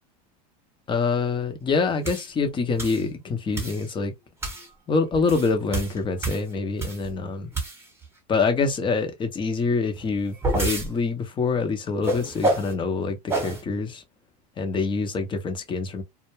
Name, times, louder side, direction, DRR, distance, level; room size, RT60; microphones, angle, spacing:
voice 1, 0.9-4.1 4.9-7.5 8.3-14.0 14.6-16.0, left 4 dB, 25° left, 0.7 m, -25 dB
sound 1, 2.0-2.3 2.8-3.0 3.5-3.9 4.4-4.7 5.1-7.1 7.5-8.0 10.0-10.9 12.0-12.7 13.3-13.6, right 2 dB, 10° right, 1.1 m, -28 dB
2.2 x 2.1 x 3.1 m
hypercardioid pair, 110°, 21 cm